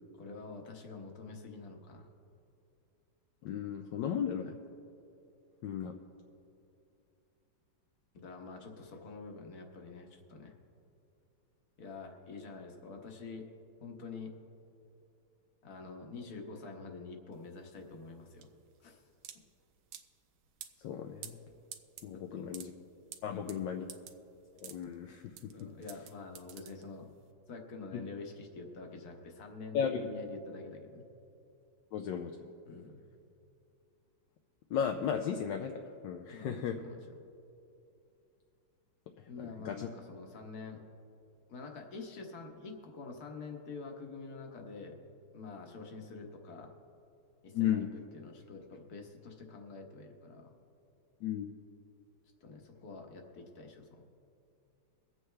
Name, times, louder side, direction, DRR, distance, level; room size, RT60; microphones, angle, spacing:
voice 1, 0.1-2.1 8.1-10.6 11.8-13.5 13.8-14.3 15.6-18.5 18.8-19.0 22.1-22.5 23.2-23.6 25.5-27.2 27.5-31.1 32.6-33.0 36.3-37.2 39.3-40.8 41.5-45.0 45.3-46.7 47.4-50.6 52.4-54.1, left 4 dB, 50° left, 2 dB, 1.6 m, -47 dB
voice 2, 3.4-4.6 5.6-5.9 20.8-21.4 22.0-22.7 23.2-23.8 24.6-25.5 29.7-30.0 31.9-32.3 34.7-35.7 36.0-36.7 39.6-39.8 47.5-47.9 51.2-51.5, left 8 dB, 70° left, 4 dB, 1.2 m, -34 dB
sound 1, 17.3-27.3, right 9 dB, 80° right, 1.5 m, -51 dB
23.5 x 7.9 x 3.3 m, 2.7 s
omnidirectional pair, 2.2 m